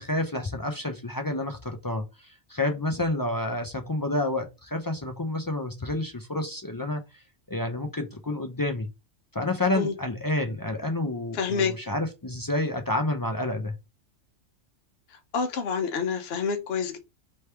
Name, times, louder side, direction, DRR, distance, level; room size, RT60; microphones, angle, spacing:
voice 1, 0.0-7.2 7.5-8.9 9.3-13.7, left 2 dB, 30° left, 0.3 m, -29 dB
voice 2, 11.3-11.7 15.3-17.0, left 5 dB, 60° left, 1.0 m, -27 dB
3.4 x 3.3 x 4.3 m
omnidirectional pair, 1.3 m